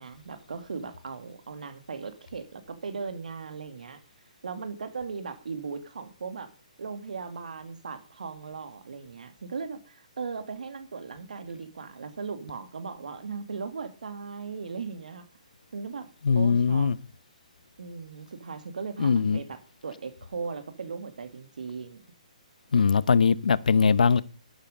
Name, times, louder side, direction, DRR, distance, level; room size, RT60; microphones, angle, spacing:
voice 1, 0.0-4.0 4.4-6.5 6.8-15.3 15.7-16.1 16.3-16.9 17.8-22.0, right 5 dB, 75° right, 2.4 m, -38 dB
voice 2, 16.2-17.0 19.0-19.4 22.7-24.2, left 5 dB, 80° left, 1.0 m, -21 dB
12.0 x 11.5 x 5.4 m
hypercardioid pair, 165°, 4 cm